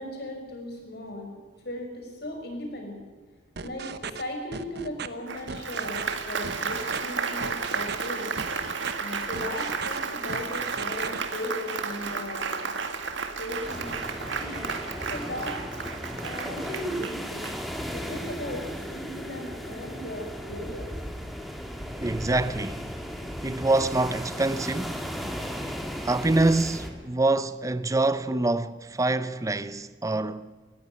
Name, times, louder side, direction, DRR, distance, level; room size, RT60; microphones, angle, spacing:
voice 1, 0.0-1.4 1.6-3.0 3.6-8.3 9.0-12.7 13.3-14.7 15.1-15.6 16.2-17.4 17.9-21.0, left 1 dB, 60° left, 5.9 m, -37 dB
sound 1, 3.6-4.2 4.5-5.1 5.5-6.1 6.4-7.0 7.4-8.1 8.4-8.9 9.3-10.0 10.3-11.2, right 5 dB, 60° right, 1.0 m, -36 dB
Applause, 5.3-18.0, right 5 dB, 80° right, 2.0 m, -33 dB
sound 2, 13.6-26.9, equal, ahead, 2.5 m, -36 dB
voice 2, 22.0-22.9 23.4-25.0 26.0-30.5, right 2 dB, 20° right, 0.6 m, -25 dB
19.5 x 14.5 x 9.9 m
head